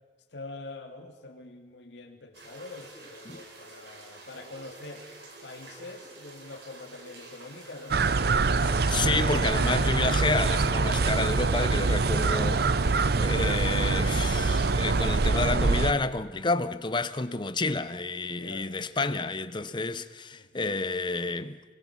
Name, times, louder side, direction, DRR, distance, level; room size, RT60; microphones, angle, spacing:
voice 1, 0.3-5.1 5.4-9.1 18.3-18.7 20.3-20.7, left 2 dB, 75° left, 2.4 m, -45 dB
sound 1, 2.3-15.3, right 2 dB, 85° right, 3.9 m, -48 dB
sound 2, 7.9-15.9, right 3 dB, 60° right, 0.6 m, -24 dB
voice 2, 8.6-21.6, left 3 dB, 25° left, 0.8 m, -30 dB
23.5 x 21.0 x 5.9 m
head